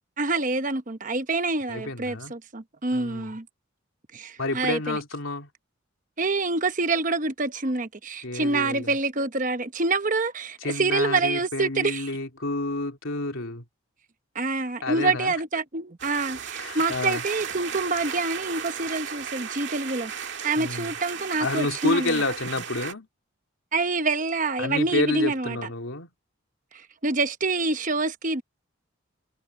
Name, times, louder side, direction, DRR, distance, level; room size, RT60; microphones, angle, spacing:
voice 1, 0.2-3.4 4.1-5.0 6.2-12.1 14.3-22.2 23.7-25.6 26.7-28.4, right 3 dB, 40° right, 1.0 m, -26 dB
voice 2, 1.7-2.3 2.9-3.3 4.4-5.5 8.2-8.9 10.6-13.6 14.8-15.3 16.6-17.2 20.6-20.9 21.4-23.1 24.6-26.1, left 2 dB, 75° left, 3.3 m, -29 dB
sound 1, 16.0-22.9, right 7 dB, 55° right, 2.0 m, -35 dB
head